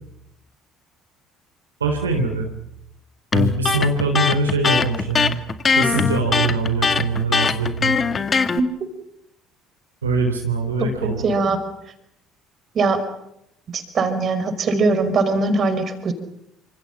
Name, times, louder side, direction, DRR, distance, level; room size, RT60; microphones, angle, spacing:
voice 1, 1.8-2.5 3.3-5.4 5.7-8.0 10.0-11.4, right 3 dB, 80° right, 3 dB, 3.4 m, -23 dB
Electric guitar, 3.3-8.6, left 5 dB, 35° left, 2.0 m, -20 dB
voice 2, 11.2-11.6 12.8-13.0 13.7-16.1, right 3 dB, 40° right, 9 dB, 5.3 m, -20 dB
28.0 x 26.5 x 6.0 m, 0.79 s
figure-of-eight pair, 55°, 0 cm